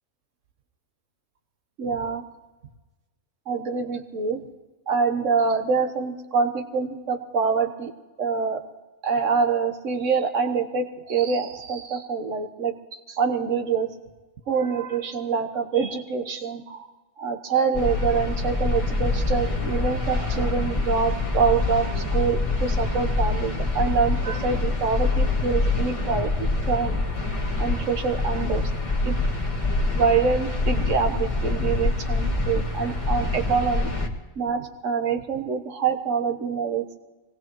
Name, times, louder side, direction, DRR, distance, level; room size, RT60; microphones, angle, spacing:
voice 1, 1.8-2.2 3.5-4.4 4.9-7.9 8.2-8.6 9.0-13.9 14.5-16.9 17.2-27.0 27.6-28.6 29.0-29.2 29.9-33.9 34.4-37.0, right 5 dB, 70° right, 5 dB, 1.5 m, -25 dB
sound 1, 17.7-34.1, left 2 dB, 25° left, 1.7 m, -25 dB
24.5 x 19.0 x 3.1 m, 1.2 s
omnidirectional pair, 1.3 m